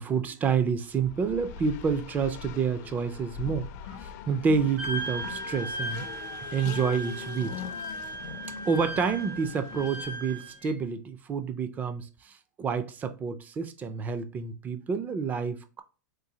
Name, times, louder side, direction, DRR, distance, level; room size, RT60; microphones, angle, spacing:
voice 1, 0.0-4.0 4.3-6.1 6.5-7.6 8.7-12.3 12.6-15.8, right 6 dB, 15° right, 0.3 m, -28 dB
Race car auto racing, 0.9-10.5, left 8 dB, 50° left, 0.4 m, -42 dB
Wind instrument woodwind instrument, 4.8-10.8, equal, 65° right, 1.8 m, -37 dB
3.8 x 2.7 x 2.7 m
supercardioid pair, 145°, 10 cm